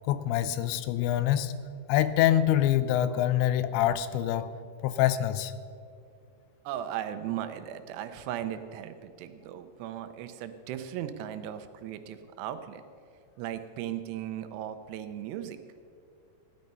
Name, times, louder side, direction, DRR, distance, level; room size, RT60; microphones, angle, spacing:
voice 1, 0.1-1.6 1.9-4.5 4.8-5.5, left 12 dB, 85° left, 13 dB, 2.9 m, -25 dB
voice 2, 6.7-12.8 13.4-15.6, right 11 dB, 80° right, 9 dB, 2.8 m, -37 dB
16.0 x 10.5 x 5.4 m, 2.4 s
omnidirectional pair, 5.0 m